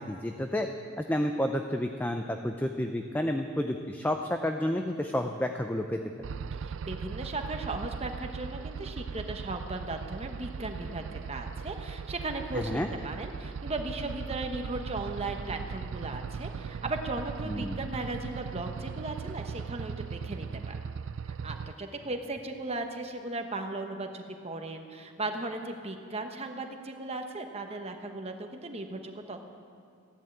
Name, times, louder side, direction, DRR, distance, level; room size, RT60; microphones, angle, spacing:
voice 1, 0.1-0.7 1.0-6.0 12.5-12.9 17.5-17.8, left 1 dB, 10° left, 5 dB, 0.5 m, -30 dB
sound 1, 6.2-21.7, right 6 dB, 60° right, 0.3 m, -38 dB
voice 2, 6.6-20.8 21.2-29.4, right 2 dB, 30° right, 5 dB, 1.1 m, -37 dB
15.5 x 11.0 x 8.0 m, 2.3 s
head